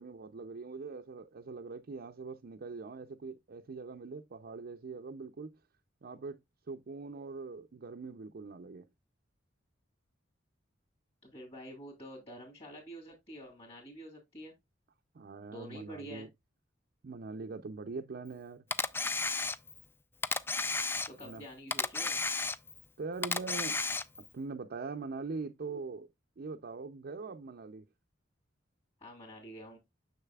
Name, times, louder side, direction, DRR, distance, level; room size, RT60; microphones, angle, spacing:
voice 1, 0.0-5.6 6.0-6.4 6.7-8.9 15.1-16.3 17.0-18.6 21.2-21.4 23.0-23.8 24.3-26.1 26.4-27.9, right 4 dB, 55° right, 0.5 m, -42 dB
voice 2, 11.2-14.5 15.5-16.3 21.1-22.2 29.0-29.8, equal, 30° left, 2.7 m, -48 dB
Camera, 18.7-19.9 20.2-21.4 21.7-22.9 23.2-24.3, left 3 dB, 10° left, 0.3 m, -33 dB
6.6 x 6.5 x 2.3 m
head